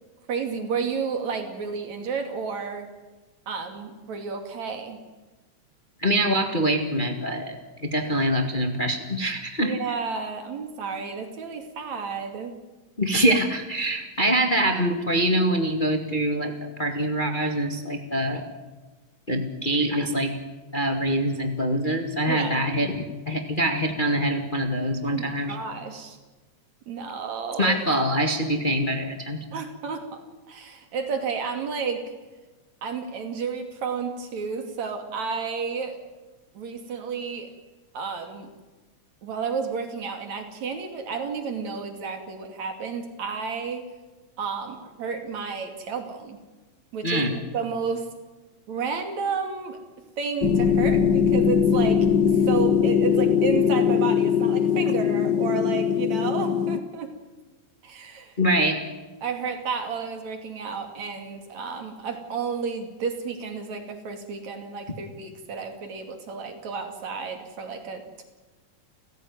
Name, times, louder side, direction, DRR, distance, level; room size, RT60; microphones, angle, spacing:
voice 1, 0.3-2.9 3.5-5.0 9.6-12.6 22.3-22.7 25.0-26.2 26.9-27.8 29.5-32.2 32.8-36.0 36.5-37.5 37.9-38.5 39.2-43.9 44.4-46.4 46.9-48.1 48.7-49.8 50.2-52.1 52.3-57.1 57.8-58.3 59.2-68.2, right 5 dB, 70° right, 6 dB, 3.9 m, -31 dB
voice 2, 6.0-7.5 7.8-9.7 13.0-18.5 19.3-20.3 20.7-25.6 27.6-29.4 47.0-47.3 58.4-58.8, right 1 dB, 20° left, 5 dB, 1.7 m, -24 dB
sound 1, 50.4-56.8, left 8 dB, 65° left, 1.1 m, -21 dB
29.5 x 16.0 x 9.6 m, 1.2 s
omnidirectional pair, 3.3 m